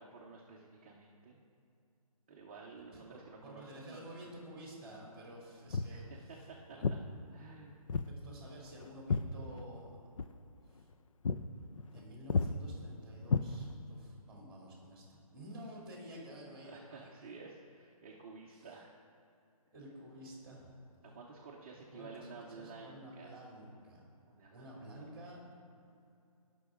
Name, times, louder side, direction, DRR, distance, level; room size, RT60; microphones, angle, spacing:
voice 1, 0.0-1.4 2.3-4.3 5.9-7.0 7.3-7.8 16.6-18.9 21.0-23.3 24.3-25.3, right 4 dB, 20° right, -3 dB, 0.7 m, -52 dB
voice 2, 2.9-6.3 6.7-6.9 8.0-10.0 11.9-17.1 18.5-18.7 19.7-20.7 21.7-22.3 22.5-24.0 24.5-25.4, right 1 dB, 5° right, -3 dB, 2.2 m, -51 dB
Walk footsteps, 5.7-6.0 6.8-7.0 7.9-8.1 8.4-9.9 10.2-10.4 10.8-10.9 11.2-11.5 11.8-12.0 12.3-12.5 13.3-14.0, left 5 dB, 60° left, 0.5 m, -33 dB
16.5 x 6.1 x 3.7 m, 2.6 s
hypercardioid pair, 165°, 19 cm